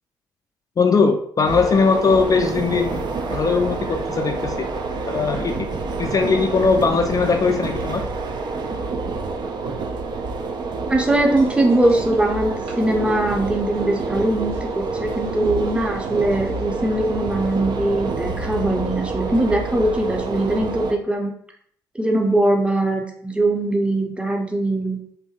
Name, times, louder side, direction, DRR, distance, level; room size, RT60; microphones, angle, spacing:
voice 1, 0.8-3.0 3.3-4.5 5.1-5.5 6.0-8.0, left 4 dB, 35° left, 5 dB, 0.3 m, -19 dB
sound 1, 1.4-20.9, right 3 dB, 45° right, 0.4 m, -28 dB
voice 2, 10.9-21.3 22.0-25.0, right 1 dB, 10° right, 2 dB, 0.6 m, -21 dB
sound 2, 11.4-17.7, right 2 dB, 70° right, 0.8 m, -38 dB
2.6 x 2.5 x 2.3 m, 0.63 s
hypercardioid pair, 45°, 10 cm